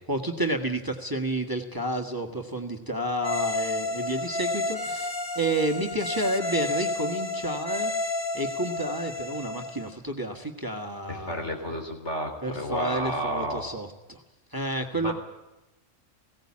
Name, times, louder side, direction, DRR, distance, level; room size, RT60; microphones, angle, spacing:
voice 1, 0.1-7.9 8.3-11.5 12.4-14.2 14.5-15.1, right 1 dB, 15° right, 3 dB, 1.7 m, -30 dB
sound 1, 3.2-9.9, left 2 dB, 15° left, 3.5 m, -31 dB
voice 2, 11.1-13.7 14.9-15.1, equal, 65° left, 3 dB, 4.1 m, -31 dB
20.0 x 17.0 x 8.7 m, 0.98 s
omnidirectional pair, 1.3 m